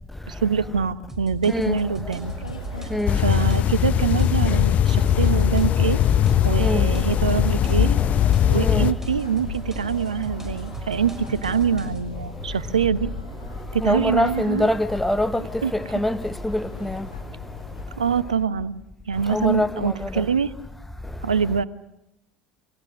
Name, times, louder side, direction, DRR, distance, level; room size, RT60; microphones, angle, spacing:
voice 1, 0.3-2.3 3.2-6.0 6.4-8.0 8.5-13.1 13.7-14.7 15.4-15.7 18.0-18.8 19.1-20.5 21.2-21.6, right 6 dB, 75° right, 0.9 m, -24 dB
sound 1, 1.1-12.0, right 1 dB, 10° right, 6.2 m, -41 dB
voice 2, 1.5-1.8 2.9-3.2 6.6-6.9 8.6-8.9 13.8-17.1 19.3-20.2, left 1 dB, 5° left, 1.0 m, -24 dB
sound 2, 2.2-17.9, left 1 dB, 85° left, 2.3 m, -37 dB
sound 3, 3.1-8.9, left 10 dB, 40° left, 0.9 m, -20 dB
29.0 x 24.5 x 6.2 m
figure-of-eight pair, 70°, 4 cm